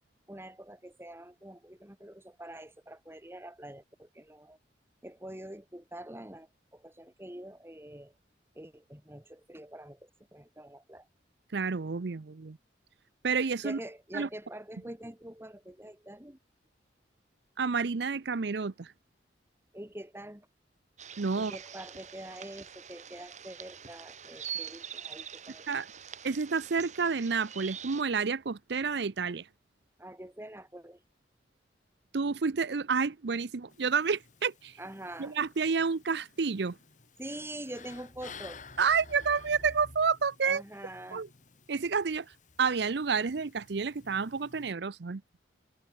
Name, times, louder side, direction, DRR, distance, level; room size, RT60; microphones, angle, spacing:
voice 1, 0.3-4.6 5.0-8.1 8.6-11.1 13.6-16.4 19.7-20.5 21.3-25.7 30.0-31.0 34.8-35.4 37.2-38.6 40.4-41.2, right 1 dB, 15° right, 1.8 m, -45 dB
voice 2, 11.5-12.6 13.2-13.8 14.1-14.3 17.6-18.9 21.2-21.5 25.7-25.9 26.2-29.5 32.1-34.8 35.2-36.8 38.8-40.6 41.1-41.3 41.7-45.2, right 5 dB, 65° right, 0.6 m, -30 dB
sound 1, 21.0-28.0, right 8 dB, 40° right, 3.2 m, -44 dB
sound 2, 33.7-44.7, left 4 dB, 40° left, 1.8 m, -53 dB
head